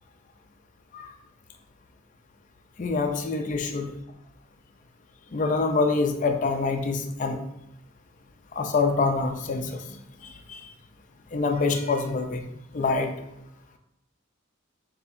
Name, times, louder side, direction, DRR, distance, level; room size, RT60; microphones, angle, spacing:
voice 1, 2.8-3.9 5.3-7.4 8.5-10.6 11.3-12.4 12.7-13.1, left 3 dB, 40° left, 5 dB, 0.4 m, -26 dB
6.4 x 2.8 x 2.6 m, 0.81 s
head